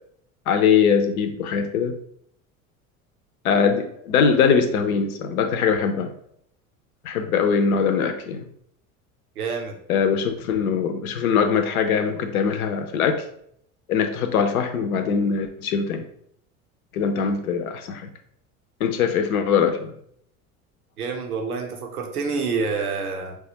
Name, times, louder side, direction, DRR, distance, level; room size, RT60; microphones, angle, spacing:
voice 1, 0.5-2.0 3.4-6.1 7.0-8.4 9.9-13.2 13.9-16.0 16.9-18.0 18.8-19.9, left 6 dB, 75° left, 7 dB, 0.7 m, -22 dB
voice 2, 9.4-9.8 21.0-23.4, right 4 dB, 85° right, 3 dB, 0.8 m, -27 dB
4.6 x 2.3 x 2.8 m, 0.68 s
hypercardioid pair, 70°, 43 cm